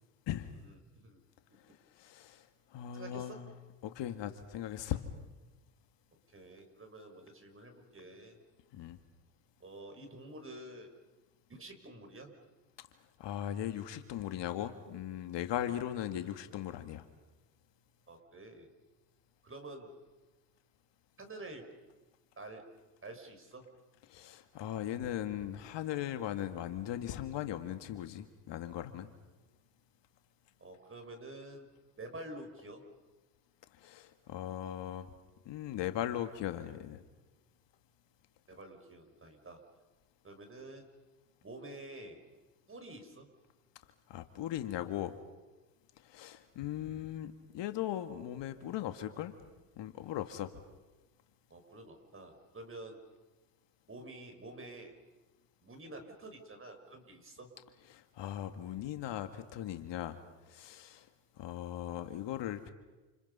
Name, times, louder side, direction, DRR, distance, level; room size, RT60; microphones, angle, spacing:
voice 1, 0.6-1.2 2.9-3.4 6.3-8.4 9.6-10.9 11.5-12.3 18.1-18.7 19.4-19.9 21.2-21.7 22.4-22.6 23.0-23.7 30.6-31.7 32.0-32.8 38.5-39.6 40.2-40.9 41.4-42.2 42.7-43.3 51.5-53.0 53.9-54.9 55.6-57.5, right 2 dB, 25° right, 5 dB, 6.0 m, -48 dB
voice 2, 1.6-2.5 2.7-3.5 3.8-5.1 8.7-9.0 13.2-17.0 24.1-29.1 33.8-35.1 35.5-37.0 44.1-45.1 46.0-49.3 49.8-50.5 57.9-60.2 60.5-61.1 61.4-62.7, left 11 dB, 60° left, 9 dB, 2.0 m, -38 dB
29.0 x 29.0 x 5.6 m, 1.2 s
supercardioid pair, 75°, 49 cm